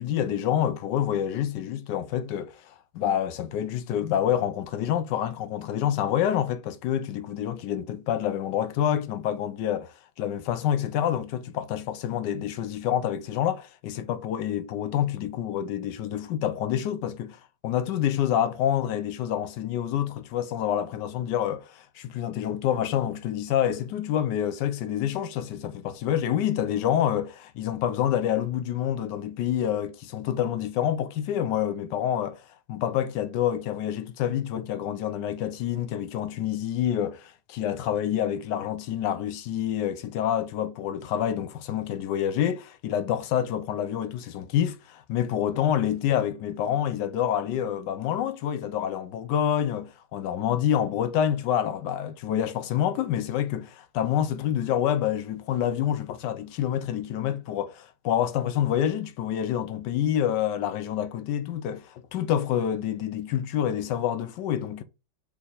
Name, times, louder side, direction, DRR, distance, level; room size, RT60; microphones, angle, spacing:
voice 1, 0.0-32.4 32.7-64.8, left 10 dB, 75° left, 1.2 m, -27 dB
3.5 x 3.4 x 3.9 m
omnidirectional pair, 1.9 m